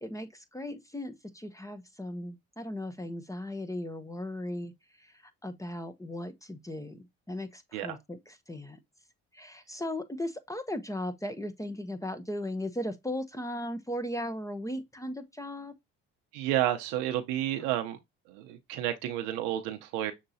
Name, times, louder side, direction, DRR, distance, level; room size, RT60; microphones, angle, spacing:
voice 1, 0.0-4.7 5.0-5.1 5.4-8.8 9.3-15.7, left 1 dB, 10° left, 0.8 m, -37 dB
voice 2, 16.3-18.0 18.3-20.1, right 13 dB, 90° right, 0.7 m, -31 dB
6.5 x 2.9 x 2.7 m
supercardioid pair, 75°, 30 cm